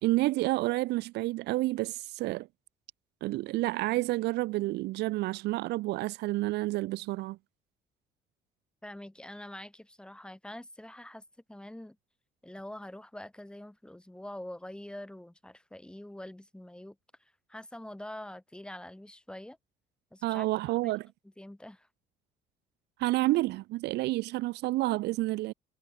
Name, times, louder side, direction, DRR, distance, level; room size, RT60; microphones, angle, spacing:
voice 1, 0.0-2.5 3.2-7.4 20.2-21.1 23.0-25.5, right 19 dB, 80° right, 0.9 m, -29 dB
voice 2, 8.8-11.2 11.5-12.0 12.4-19.6 20.1-21.0 21.4-21.9, left 1 dB, 5° left, 7.7 m, -45 dB
cardioid pair, 110°, 17 cm